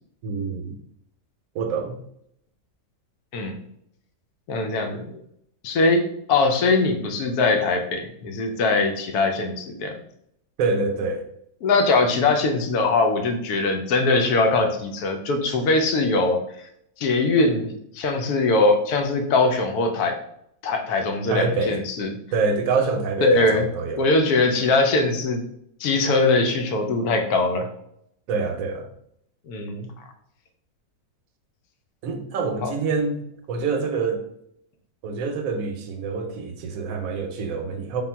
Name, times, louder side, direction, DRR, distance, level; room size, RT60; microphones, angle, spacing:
voice 1, 0.2-0.8 1.5-2.0 10.6-11.2 21.3-21.8 22.3-24.1 28.3-28.9 32.0-33.2 33.5-34.2 35.0-38.0, right 4 dB, 70° right, 6 dB, 1.0 m, -26 dB
voice 2, 4.5-5.2 5.6-6.0 6.3-10.0 11.6-16.4 17.0-20.2 20.6-22.2 23.2-23.7 24.0-25.4 25.8-27.7 29.5-29.9 32.6-32.7, left 3 dB, 85° left, 5 dB, 1.2 m, -21 dB
3.6 x 2.2 x 4.3 m, 0.73 s
omnidirectional pair, 1.6 m